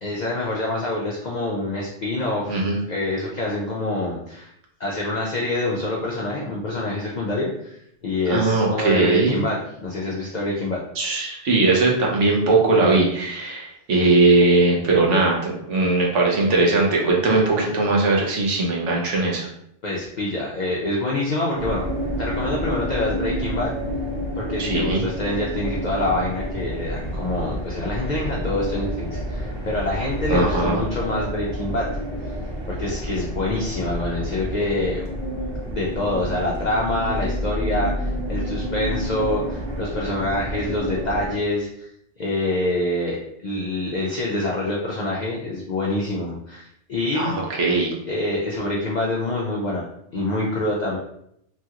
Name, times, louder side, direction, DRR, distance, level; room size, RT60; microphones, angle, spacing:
voice 1, 0.0-2.6 2.9-4.5 4.8-10.8 19.8-21.9 22.2-23.7 24.4-31.9 32.7-35.1 35.6-41.9 42.2-47.3 48.1-49.8 50.1-51.0, left 2 dB, 60° left, -3 dB, 0.4 m, -26 dB
voice 2, 8.3-9.4 11.0-19.5 24.6-25.0 30.3-30.8 47.1-47.9, right 3 dB, 80° right, -2 dB, 1.1 m, -19 dB
sound 1, 21.6-41.3, equal, 55° right, 0.9 m, -29 dB
3.0 x 2.8 x 2.4 m, 0.74 s
omnidirectional pair, 1.3 m